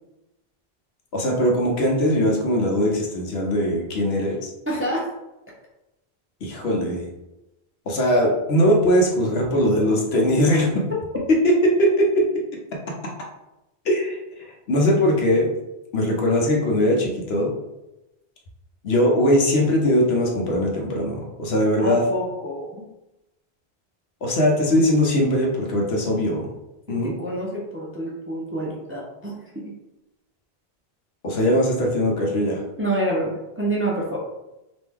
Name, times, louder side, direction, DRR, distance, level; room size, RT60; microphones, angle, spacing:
voice 1, 1.1-4.5 6.4-7.1 7.9-10.8 11.3-12.4 13.8-14.2 14.7-15.5 15.9-17.5 18.8-22.1 24.2-26.5 26.9-27.1 31.2-32.6, equal, 75° left, 0 dB, 1.0 m, -20 dB
voice 2, 4.7-5.1 21.8-22.9 26.9-29.7 32.8-34.2, right 1 dB, 15° right, -3 dB, 0.5 m, -28 dB
3.0 x 2.6 x 3.5 m, 0.95 s
omnidirectional pair, 1.1 m